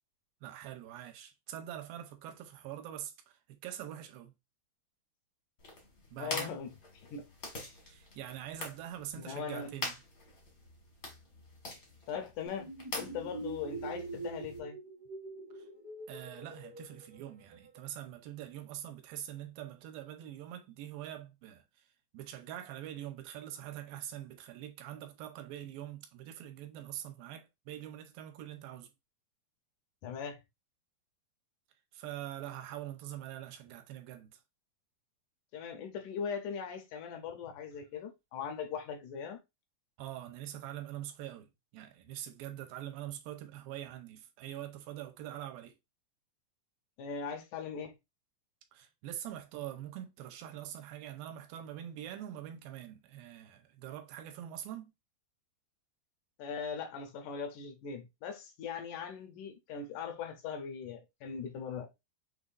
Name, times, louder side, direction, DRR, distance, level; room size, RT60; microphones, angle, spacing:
voice 1, 0.4-4.3 6.1-6.5 7.8-10.0 15.5-15.7 16.1-21.9 22.1-28.9 31.9-34.4 40.0-45.8 48.7-54.9, right 11 dB, 80° right, 2.4 m, -44 dB
sound 1, 5.6-14.6, left 2 dB, 50° left, 1.1 m, -45 dB
voice 2, 6.2-6.8 7.1-7.3 9.2-9.7 12.1-12.7 12.9-14.8 30.0-30.4 35.5-39.4 47.0-47.9 56.4-61.9, left 6 dB, 75° left, 1.9 m, -40 dB
sound 2, 12.4-17.8, right 2 dB, 50° right, 1.0 m, -44 dB
6.4 x 3.1 x 2.5 m
omnidirectional pair, 4.3 m